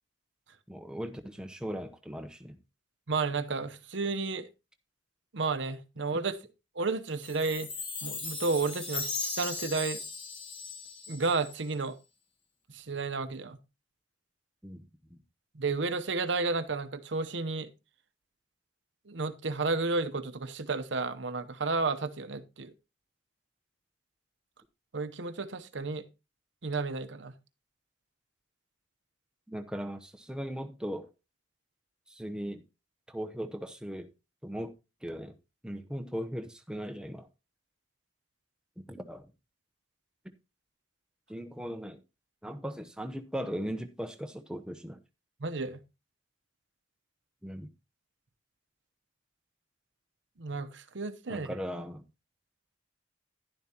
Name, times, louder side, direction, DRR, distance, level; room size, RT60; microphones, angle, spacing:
voice 1, 0.7-2.6 14.6-15.2 29.5-31.1 32.1-32.6 33.1-34.1 34.4-34.7 35.0-35.3 35.6-37.3 38.9-39.3 41.3-42.0 42.4-45.0 47.4-47.7 51.3-52.1, equal, 5° right, 0.8 m, -38 dB
voice 2, 3.1-4.5 5.3-6.4 6.7-7.7 8.0-10.0 11.1-12.0 12.7-13.6 15.5-17.7 19.1-22.7 24.9-26.0 26.6-27.3 45.4-45.8 50.4-51.5, right 3 dB, 70° right, 0.8 m, -32 dB
Chime, 7.2-11.7, left 4 dB, 30° left, 1.9 m, -38 dB
11.0 x 11.0 x 2.9 m
head